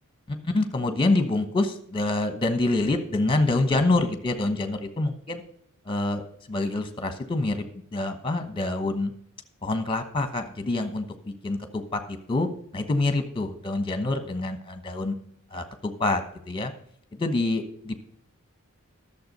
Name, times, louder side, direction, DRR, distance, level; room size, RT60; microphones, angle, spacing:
voice 1, 0.3-5.4 5.9-6.2 6.5-9.1 9.6-15.1 15.5-16.7 17.1-17.9, left 2 dB, 25° left, 8 dB, 1.1 m, -26 dB
11.5 x 7.0 x 5.3 m, 0.65 s
head